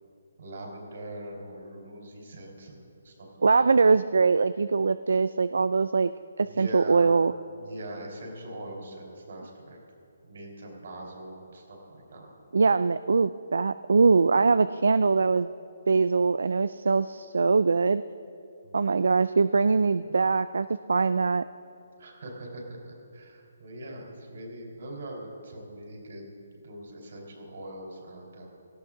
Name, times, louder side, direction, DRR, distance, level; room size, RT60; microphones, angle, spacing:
voice 1, 0.4-3.8 6.4-7.1 7.6-9.8 10.2-12.3 18.6-18.9 20.0-20.2 22.0-28.5, right 1 dB, 60° right, 0 dB, 4.1 m, -42 dB
voice 2, 3.4-6.1 6.4-7.3 12.5-15.5 15.9-18.0 18.7-21.4, right 4 dB, 80° right, 14 dB, 0.3 m, -22 dB
18.0 x 14.0 x 3.8 m, 2.6 s
hypercardioid pair, 160°, 0 cm